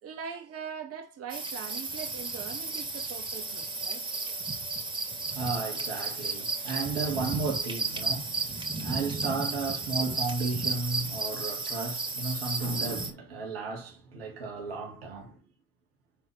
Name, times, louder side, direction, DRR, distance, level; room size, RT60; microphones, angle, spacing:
voice 1, 0.0-4.0 6.7-6.8, right 7 dB, 55° right, 2.5 m, -41 dB
sound 1, 1.3-13.1, right 3 dB, 15° right, 3.5 m, -33 dB
voice 2, 5.2-15.4, right 4 dB, 80° right, 2.3 m, -34 dB
11.0 x 4.7 x 3.5 m
figure-of-eight pair, 50°, 29 cm